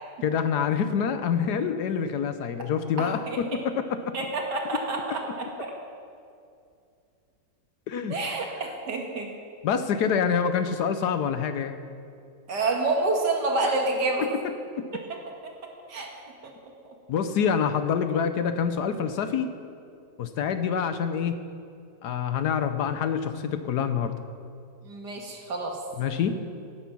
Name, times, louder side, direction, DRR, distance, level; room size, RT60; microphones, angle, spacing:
voice 1, 0.2-4.1 7.9-8.2 9.6-11.7 14.8-14.9 17.1-19.5 20.2-21.4 22.0-24.1 26.0-26.4, left 7 dB, 70° left, 9 dB, 1.2 m, -26 dB
voice 2, 3.0-3.4 4.1-5.7 8.1-9.3 12.5-14.3 15.9-16.1 16.4-16.5 24.8-25.8, right 3 dB, 70° right, 1 dB, 2.3 m, -28 dB
16.5 x 8.9 x 6.0 m, 2.5 s
omnidirectional pair, 1.9 m